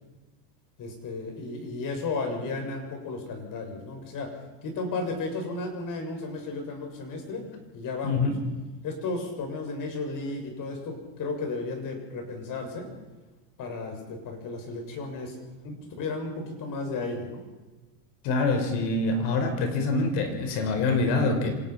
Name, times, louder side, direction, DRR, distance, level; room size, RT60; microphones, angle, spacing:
voice 1, 0.8-4.3 4.6-7.5 7.7-8.3 8.8-12.9 13.6-15.4 16.0-17.4, left 3 dB, 45° left, 4 dB, 6.8 m, -34 dB
voice 2, 8.0-8.4 15.6-15.7 18.2-21.6, left 3 dB, 60° left, 6 dB, 5.4 m, -25 dB
26.0 x 18.0 x 6.0 m, 1.2 s
supercardioid pair, 125°, 46 cm